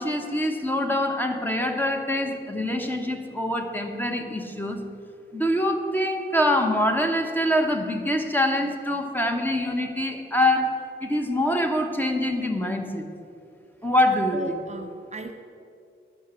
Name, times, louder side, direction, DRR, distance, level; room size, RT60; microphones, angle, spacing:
voice 1, 0.0-4.8 5.3-13.1 13.8-14.6, left 1 dB, 10° left, 4 dB, 1.0 m, -25 dB
voice 2, 14.3-15.3, right 2 dB, 35° right, 6 dB, 0.5 m, -36 dB
11.0 x 6.0 x 6.9 m, 2.5 s
wide cardioid pair, 95°, 20 cm